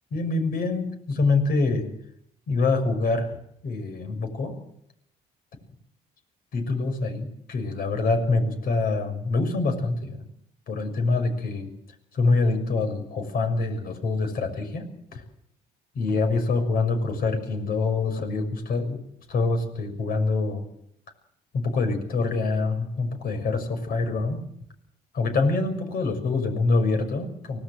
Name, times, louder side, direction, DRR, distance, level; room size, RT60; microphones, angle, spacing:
voice 1, 0.1-1.9 2.5-3.3 3.6-4.5 6.5-10.2 10.7-11.7 12.1-15.2 15.9-19.0 19.3-20.6 21.5-24.4 25.1-27.6, left 3 dB, 60° left, 7 dB, 6.3 m, -25 dB
24.5 x 18.5 x 7.7 m, 0.73 s
cardioid pair, 110°, 17 cm